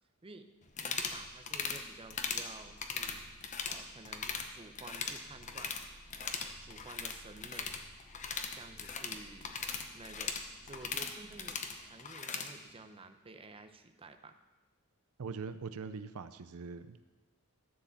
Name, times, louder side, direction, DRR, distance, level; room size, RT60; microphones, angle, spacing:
Purr, 0.6-11.9, right 1 dB, 55° right, 1.6 m, -59 dB
sound 1, 0.7-1.2 1.5-1.8 2.1-2.5 2.8-3.8 4.0-4.5 4.7-5.8 6.1-12.5, left 5 dB, 35° left, 0.8 m, -38 dB
voice 1, 0.8-3.2 3.7-5.8 6.2-7.7 8.5-9.6 9.9-14.4, right 3 dB, 25° right, 8 dB, 0.6 m, -52 dB
voice 2, 15.2-17.1, right 5 dB, 85° right, 12 dB, 0.5 m, -42 dB
13.0 x 4.8 x 7.2 m, 1.2 s
head